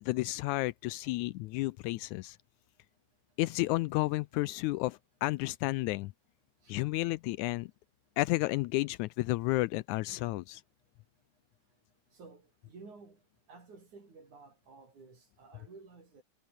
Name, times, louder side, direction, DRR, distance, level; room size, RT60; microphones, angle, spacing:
voice 1, 0.0-2.4 3.4-6.1 6.7-7.7 8.2-10.6, left 19 dB, 80° left, 1.9 m, -32 dB
voice 2, 12.1-13.2 13.5-16.2, right 4 dB, 75° right, 7.6 m, -53 dB
omnidirectional pair, 3.5 m